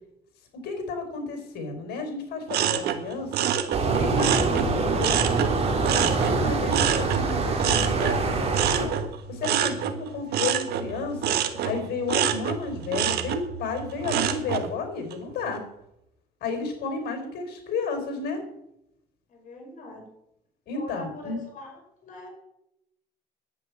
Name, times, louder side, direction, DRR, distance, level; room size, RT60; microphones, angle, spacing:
voice 1, 0.6-3.4 3.9-5.5 6.2-8.9 9.3-11.3 11.6-15.6 16.4-18.4 20.7-21.4, left 4 dB, 70° left, 5 dB, 4.8 m, -32 dB
sound 1, 2.5-5.5 5.8-14.7 15.1-15.6, right 9 dB, 70° right, 1.5 m, -27 dB
sound 2, 3.7-8.9, right 3 dB, 40° right, 3.4 m, -25 dB
voice 2, 19.3-20.1 20.7-22.3, left 1 dB, 50° left, 1 dB, 5.1 m, -43 dB
10.5 x 8.7 x 8.5 m, 0.82 s
cardioid pair, 110°, 17 cm